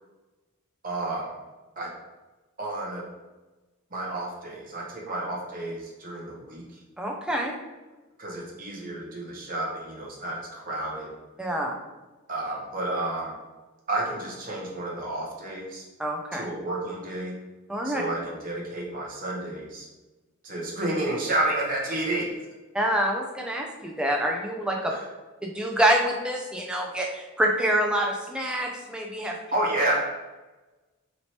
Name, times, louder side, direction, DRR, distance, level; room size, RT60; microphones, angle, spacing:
voice 1, 0.8-1.4 1.8-1.9 2.6-3.0 3.9-6.8 8.2-11.1 12.3-13.4 13.9-15.8 16.3-17.4 17.8-19.9 20.4-22.3 24.9-25.1 29.5-30.1, right 1 dB, 40° right, -3 dB, 0.7 m, -30 dB
voice 2, 7.0-7.5 11.4-11.7 16.0-16.4 17.7-18.0 22.7-24.9 25.4-29.4, right 1 dB, 5° right, 0 dB, 0.3 m, -26 dB
3.0 x 2.9 x 2.8 m, 1.2 s
head